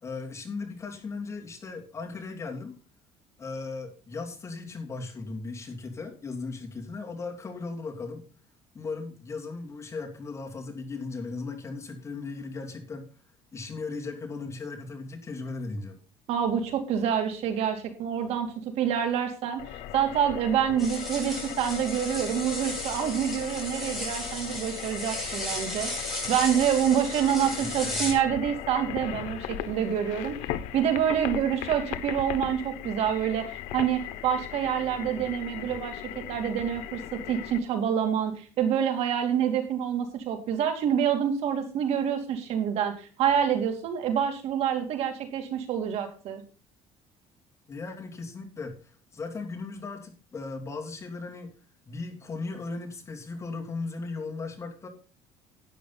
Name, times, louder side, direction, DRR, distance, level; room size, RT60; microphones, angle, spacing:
voice 1, 0.0-2.8 3.4-8.3 8.7-13.1 13.5-16.0 27.6-28.2 47.7-51.5 51.9-54.9, left 3 dB, 25° left, 1 dB, 2.9 m, -37 dB
voice 2, 16.3-18.5 18.8-19.6 19.9-25.9 26.3-30.4 30.7-46.4, right 9 dB, 60° right, 5 dB, 2.9 m, -27 dB
sound 1, 19.6-37.6, left 12 dB, 85° left, 1.2 m, -38 dB
sound 2, 20.8-28.1, left 1 dB, ahead, 7.3 m, -35 dB
12.0 x 9.7 x 4.1 m, 0.36 s
cardioid pair, 145°, 12 cm